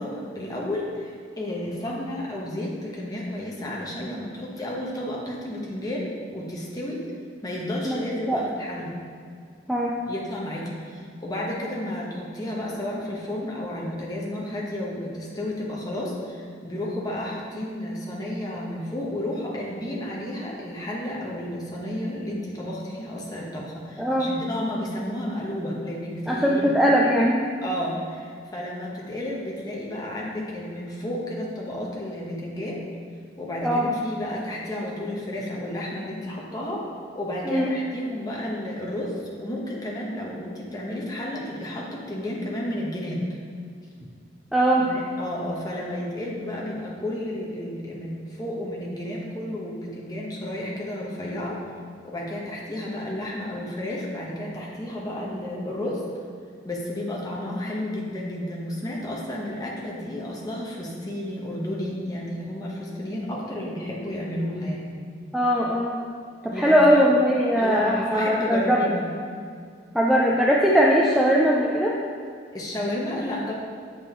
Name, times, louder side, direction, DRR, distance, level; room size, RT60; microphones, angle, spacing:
voice 1, 0.0-7.0 7.4-9.0 10.0-26.7 27.6-32.8 33.4-36.9 37.1-43.2 44.8-51.6 52.0-56.0 56.6-64.9 66.5-67.0 67.6-69.0 72.5-73.5, left 1 dB, 20° left, -4 dB, 1.0 m, -32 dB
voice 2, 24.0-24.3 26.3-27.4 33.6-33.9 37.5-37.7 44.5-44.9 65.3-66.0 66.4-68.8 69.9-72.0, equal, ahead, -4 dB, 0.4 m, -20 dB
7.9 x 5.1 x 3.0 m, 2.3 s
head